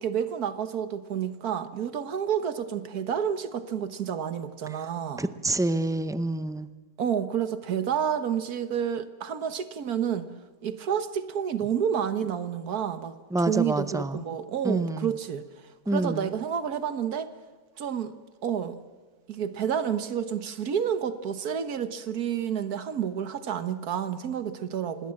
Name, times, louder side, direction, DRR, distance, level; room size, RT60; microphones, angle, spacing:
voice 1, 0.0-5.3 7.0-10.3 10.6-15.5 15.9-17.3 17.8-18.1 18.4-18.8 19.3-25.1, right 8 dB, 85° right, 1.7 m, -29 dB
voice 2, 5.2-6.7 13.3-14.2 14.6-15.1 15.9-16.3, right 2 dB, 5° right, 0.3 m, -27 dB
26.0 x 20.0 x 7.7 m
omnidirectional pair, 1.6 m